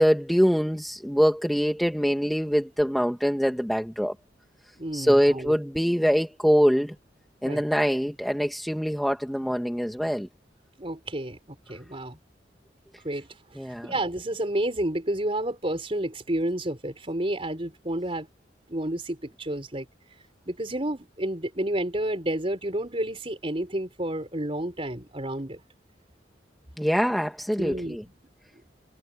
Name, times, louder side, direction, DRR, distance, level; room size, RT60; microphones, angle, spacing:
voice 1, 0.0-4.1 4.9-6.9 7.4-10.3 13.6-13.9 26.8-28.0, equal, ahead, 1.7 m, -24 dB
voice 2, 4.8-5.5 7.4-7.6 10.8-12.2 13.0-13.3 13.8-18.3 18.7-19.9 20.4-25.6 27.6-28.1, right 1 dB, 30° right, 4.9 m, -30 dB
head